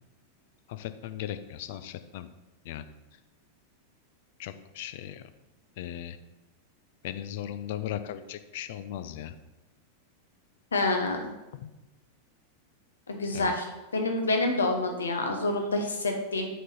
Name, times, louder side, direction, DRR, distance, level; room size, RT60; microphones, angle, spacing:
voice 1, 0.7-2.3 2.6-2.8 4.4-5.3 5.8-6.2 7.0-9.3 11.5-11.7 13.3-13.5, left 11 dB, 50° left, 11 dB, 0.5 m, -37 dB
voice 2, 10.7-11.2 13.1-13.7 13.9-16.5, left 2 dB, 70° left, 4 dB, 1.1 m, -27 dB
7.5 x 5.2 x 4.2 m, 1.0 s
figure-of-eight pair, 90°, 0 cm